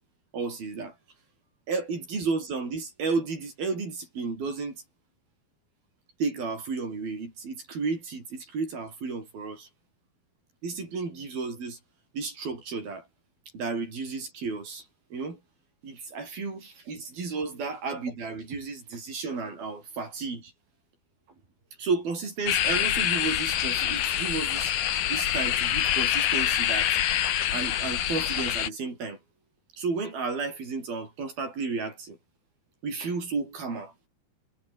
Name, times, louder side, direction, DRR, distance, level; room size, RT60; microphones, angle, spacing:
voice 1, 0.3-1.0 1.7-4.8 6.2-9.7 10.6-11.8 12.1-13.1 13.5-14.9 15.1-15.4 15.8-20.5 21.8-24.7 25.1-27.0 27.5-29.2 29.8-32.2 32.8-33.9, right 4 dB, 65° right, 8.9 m, -32 dB
sound 1, 22.5-28.7, left 11 dB, 70° left, 3.6 m, -26 dB
omnidirectional pair, 4.6 m